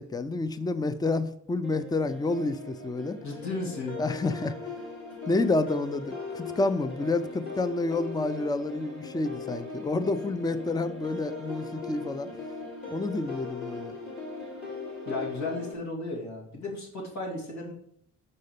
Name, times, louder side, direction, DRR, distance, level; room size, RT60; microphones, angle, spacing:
voice 1, 0.0-3.2 4.0-4.6 5.3-12.3 12.9-14.0, left 2 dB, 15° left, 13 dB, 0.5 m, -29 dB
sound 1, 1.6-15.7, left 4 dB, 45° left, 4.0 m, -39 dB
voice 2, 3.2-4.0 15.0-17.7, left 2 dB, 65° left, -1 dB, 2.7 m, -34 dB
6.6 x 5.4 x 6.7 m, 0.71 s
cardioid pair, 90°, 30 cm